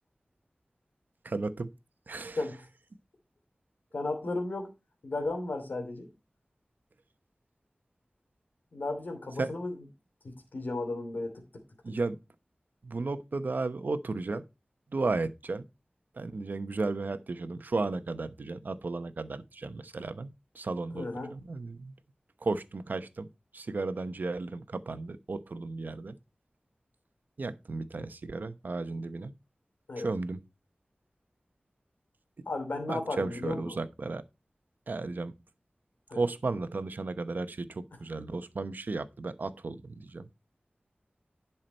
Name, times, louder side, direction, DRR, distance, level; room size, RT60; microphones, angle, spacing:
voice 1, 1.2-1.7 2.1-2.4 9.4-9.5 11.8-12.2 12.8-14.4 14.9-15.6 16.2-20.3 20.5-21.9 22.4-23.3 23.5-26.2 27.4-29.3 30.0-30.4 32.9-34.2 34.9-35.3 36.1-40.3, right 3 dB, 75° right, 0.9 m, -34 dB
voice 2, 3.9-4.7 5.0-6.1 8.7-9.7 10.2-11.4 11.9-12.0 20.9-21.3 29.9-30.1 32.5-33.8 36.1-36.2, left 2 dB, 85° left, 2.7 m, -34 dB
11.0 x 5.8 x 4.4 m
wide cardioid pair, 60°, 3 cm